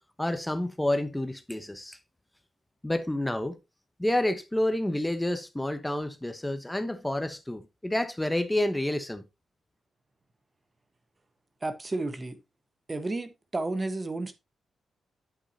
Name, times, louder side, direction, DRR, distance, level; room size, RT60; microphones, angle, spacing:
voice 1, 0.2-2.0 2.8-3.6 4.0-9.2, left 1 dB, 10° left, 1.1 m, -29 dB
voice 2, 11.6-12.4 12.9-14.3, right 2 dB, 30° right, 1.4 m, -32 dB
8.3 x 8.2 x 2.9 m
supercardioid pair, 55°, 0 cm